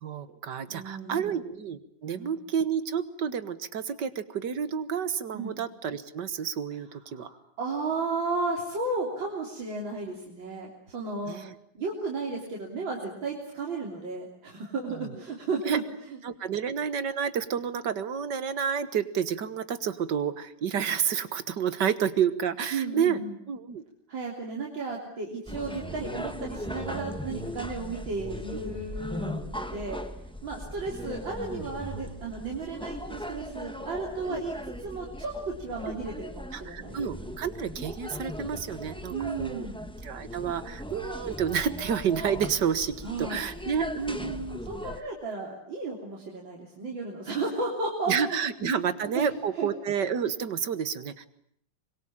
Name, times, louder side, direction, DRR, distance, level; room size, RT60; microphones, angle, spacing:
voice 1, 0.0-7.3 11.3-11.5 15.0-15.1 15.7-15.8 16.2-23.2 23.5-23.8 31.5-31.7 34.3-34.4 36.5-39.7 40.0-44.7 48.1-51.3, right 7 dB, 65° right, 13 dB, 1.9 m, -30 dB
voice 2, 0.7-1.4 2.1-2.4 5.3-5.6 7.1-11.4 11.7-16.2 22.7-23.3 24.1-30.0 30.4-37.0 39.1-39.8 43.0-43.4 44.7-48.4 49.1-49.3 49.6-49.7, right 3 dB, 85° right, -2 dB, 4.2 m, -34 dB
sound 1, 25.5-45.0, equal, 5° left, 1.2 m, -38 dB
25.0 x 22.5 x 8.7 m, 0.67 s
omnidirectional pair, 2.0 m